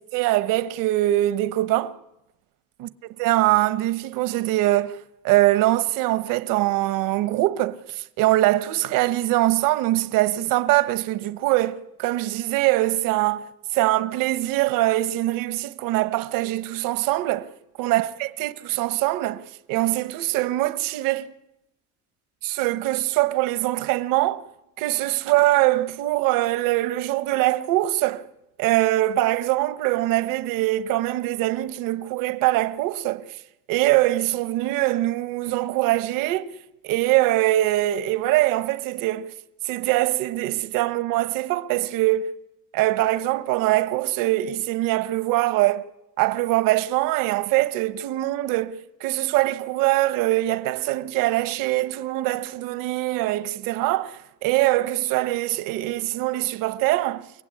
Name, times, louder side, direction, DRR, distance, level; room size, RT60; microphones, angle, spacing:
voice 1, 0.1-2.0 3.2-5.0 5.2-7.8 8.2-13.5 13.7-17.5 17.8-19.4 19.7-21.3 22.6-24.4 24.8-28.3 28.6-33.3 33.7-36.5 36.8-39.3 39.6-42.3 42.7-45.8 46.2-57.2, right 16 dB, 80° right, 1.2 m, -23 dB
30.0 x 16.5 x 9.8 m
cardioid pair, 150°, 33 cm